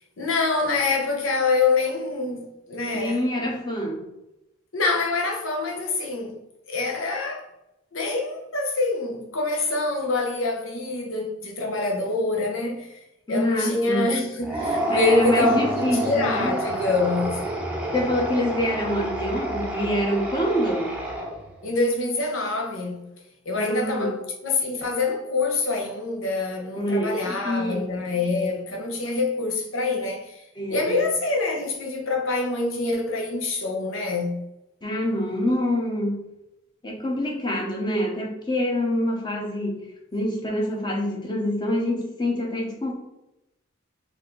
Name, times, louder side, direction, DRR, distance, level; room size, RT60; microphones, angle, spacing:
voice 1, 0.2-3.2 4.7-6.4 6.7-7.4 7.9-13.0 13.3-17.4 21.6-23.1 23.4-30.4 30.7-34.4, left 3 dB, 85° left, 1.0 m, -25 dB
voice 2, 2.9-4.1 13.3-14.1 14.9-16.6 17.9-21.0 23.6-24.1 26.8-27.8 30.6-31.0 34.8-36.3 36.8-42.9, left 1 dB, 20° left, 1.0 m, -26 dB
sound 1, 14.4-21.6, right 1 dB, 5° right, 0.6 m, -29 dB
4.4 x 2.8 x 3.8 m
head